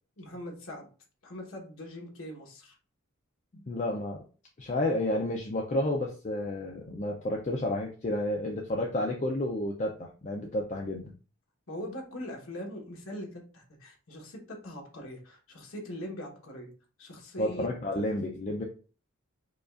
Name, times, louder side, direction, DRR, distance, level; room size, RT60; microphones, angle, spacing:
voice 1, 0.2-0.9 1.2-2.8 11.7-16.7 17.0-17.7 17.9-18.0, equal, 70° left, 0 dB, 1.1 m, -41 dB
voice 2, 3.5-4.2 4.6-11.1 17.4-18.6, left 1 dB, 30° left, 0 dB, 0.4 m, -31 dB
4.9 x 2.3 x 2.4 m, 0.37 s
head